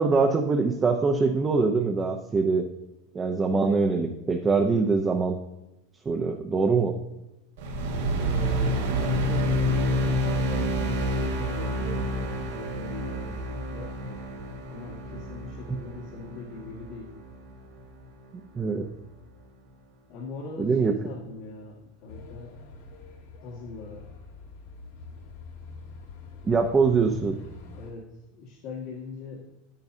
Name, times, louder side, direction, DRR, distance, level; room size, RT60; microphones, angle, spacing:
voice 1, 0.0-2.7 3.1-5.4 6.1-6.9 18.5-18.9 20.6-20.9 26.4-27.4, right 4 dB, 20° right, 2 dB, 0.7 m, -23 dB
sound 1, 7.6-18.0, equal, 85° right, 1.7 m, -28 dB
voice 2, 8.2-14.2 14.7-17.1 20.1-22.6 23.4-24.1 27.7-29.5, left 3 dB, 60° left, -5 dB, 1.8 m, -41 dB
sound 2, 22.1-27.9, left 2 dB, 80° left, 2.4 m, -45 dB
9.4 x 9.1 x 2.7 m, 0.96 s
supercardioid pair, 130°, 0 cm